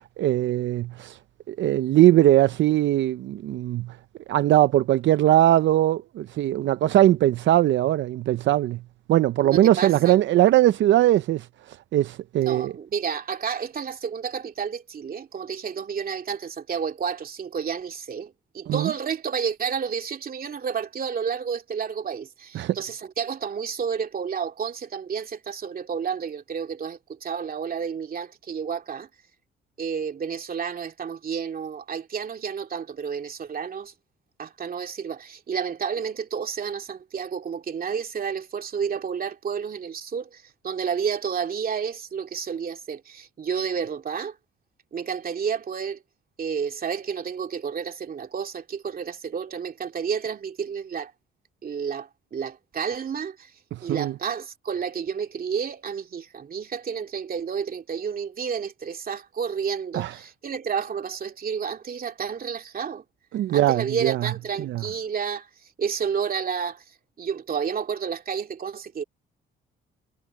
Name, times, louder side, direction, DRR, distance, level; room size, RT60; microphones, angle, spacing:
voice 1, 0.2-1.2 1.5-4.0 4.3-8.8 9.1-12.7 18.7-18.9 22.5-22.8 53.7-54.1 59.9-60.1 63.3-64.3 64.6-64.8, right 13 dB, 70° right, 0.6 m, -20 dB
voice 2, 9.4-10.2 12.4-29.1 29.8-33.9 34.4-44.4 44.9-46.0 46.4-51.1 51.6-53.5 53.8-63.0 63.5-65.5 65.8-66.8 67.2-69.0, right 6 dB, 45° right, 2.5 m, -30 dB
cardioid pair, 90°, 20 cm